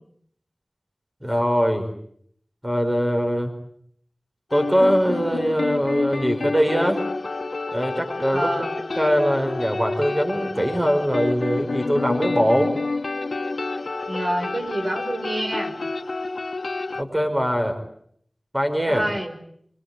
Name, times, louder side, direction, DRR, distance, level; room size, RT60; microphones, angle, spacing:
voice 1, 1.2-1.9 2.6-3.5 4.5-7.0 7.7-8.5 8.9-12.7 16.9-17.8 18.5-19.0, equal, 20° right, 5 dB, 5.3 m, -22 dB
sound 1, 4.5-17.0, left 3 dB, 85° left, 1.2 m, -29 dB
voice 2, 8.3-8.7 14.1-15.7 18.9-19.3, right 1 dB, 65° right, 3 dB, 5.7 m, -27 dB
24.5 x 23.5 x 9.3 m, 0.67 s
wide cardioid pair, 40°, 0 cm